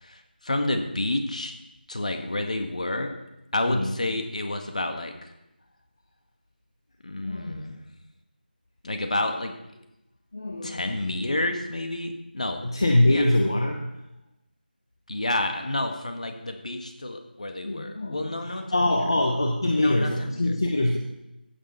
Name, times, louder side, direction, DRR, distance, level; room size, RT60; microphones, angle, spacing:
voice 1, 0.0-1.5 1.9-3.1 3.5-5.3 7.0-7.8 8.8-9.5 10.6-12.6 13.1-13.2 15.1-18.6 19.8-20.6, left 1 dB, 45° left, 5 dB, 1.7 m, -29 dB
voice 2, 7.2-7.7 10.3-11.1 12.6-14.1 17.6-21.0, left 1 dB, 30° left, 1 dB, 1.0 m, -24 dB
15.5 x 7.3 x 5.5 m, 0.90 s
figure-of-eight pair, 180°, 6 cm